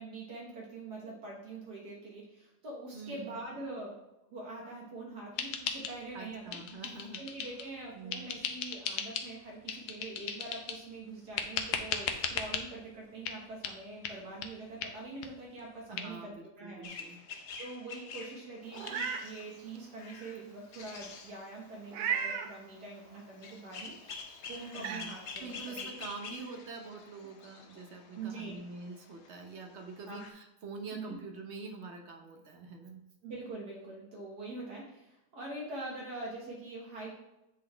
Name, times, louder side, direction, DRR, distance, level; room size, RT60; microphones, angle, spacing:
voice 1, 0.0-4.0 4.3-6.8 7.2-16.9 17.6-25.9 28.1-28.6 30.1-30.2 30.9-31.2 33.2-37.1, right 2 dB, 70° right, -3 dB, 1.9 m, -44 dB
voice 2, 2.9-3.4 6.1-7.2 7.9-8.3 15.9-17.2 24.7-25.1 25.4-33.0, right 4 dB, 50° right, 3 dB, 0.9 m, -45 dB
sound 1, 5.4-6.2 6.5-7.7 8.1-9.3 9.7-10.9 11.4-12.6 13.3-13.4 13.6-13.8 14.0-14.2 14.4-14.5 14.8-14.9 15.2-15.3 15.6-15.7 16.0-16.1, left 7 dB, 75° left, 1.2 m, -37 dB
sound 2, 16.8-30.3, left 4 dB, 60° left, 0.7 m, -48 dB
Meow, 18.7-19.2 19.7-19.8 21.9-22.5 24.1-24.2 24.7-25.0, right 7 dB, 90° right, 1.3 m, -34 dB
8.4 x 3.9 x 3.3 m, 0.90 s
omnidirectional pair, 1.9 m